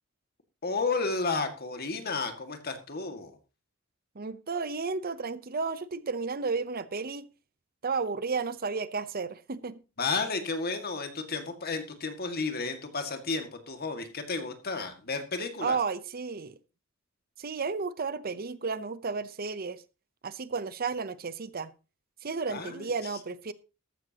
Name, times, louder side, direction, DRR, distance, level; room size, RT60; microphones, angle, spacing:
voice 1, 0.6-3.4 10.0-15.8 22.5-23.2, left 4 dB, 50° left, 6 dB, 2.0 m, -32 dB
voice 2, 4.2-7.3 7.8-9.8 15.6-16.6 17.4-19.8 20.2-21.7 22.2-23.5, right 4 dB, 45° right, 15 dB, 0.7 m, -33 dB
14.0 x 12.5 x 2.9 m, 0.31 s
head